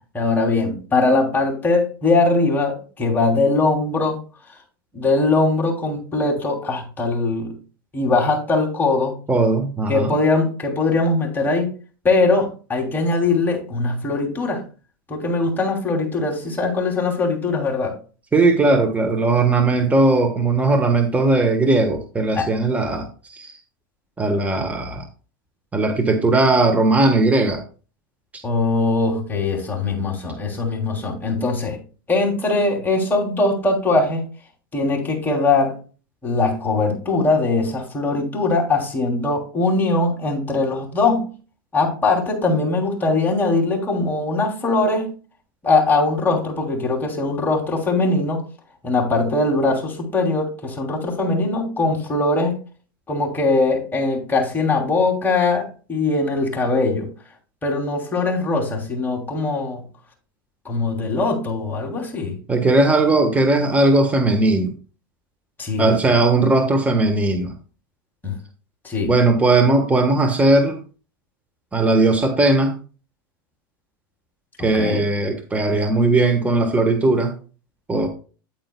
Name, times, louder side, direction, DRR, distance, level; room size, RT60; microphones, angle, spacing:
voice 1, 0.1-4.2 4.9-7.5 7.9-9.1 9.9-11.7 12.0-14.6 15.1-18.0 22.4-22.5 28.4-31.8 32.1-34.2 34.7-35.8 36.2-41.3 41.7-45.1 45.6-48.4 48.8-52.6 53.1-57.1 57.6-59.8 60.6-62.3 65.6-65.9 68.2-68.3 68.8-69.1 74.7-75.0, left 3 dB, 15° left, -1 dB, 3.0 m, -21 dB
voice 2, 9.3-10.1 18.3-23.6 24.2-25.0 25.7-27.6 28.3-28.4 62.5-64.7 65.8-67.5 69.0-70.8 71.7-72.7 74.6-77.3 77.9-78.1, right 2 dB, 10° right, 6 dB, 1.3 m, -18 dB
9.4 x 8.9 x 2.3 m, 0.36 s
hypercardioid pair, 115°, 12 cm